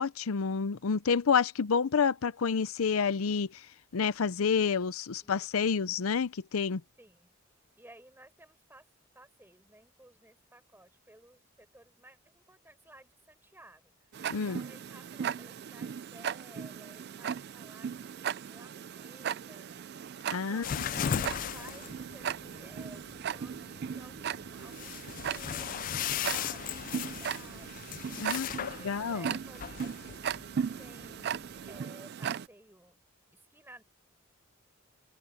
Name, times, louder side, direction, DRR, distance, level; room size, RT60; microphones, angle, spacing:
voice 1, 0.0-3.7 3.9-6.8 14.3-14.6 20.3-20.6 21.0-21.2 28.2-29.3, left 6 dB, 85° left, 0.6 m, -29 dB
voice 2, 5.2-5.7 7.0-7.3 7.8-8.9 9.1-19.7 20.3-30.1 30.8-33.0 33.3-33.8, right 1 dB, 10° right, 6.9 m, -56 dB
Tick-tock, 14.1-32.5, right 7 dB, 50° right, 0.4 m, -38 dB
Backpack zip and unzip, 20.6-31.8, left 9 dB, 40° left, 0.3 m, -38 dB
open air
head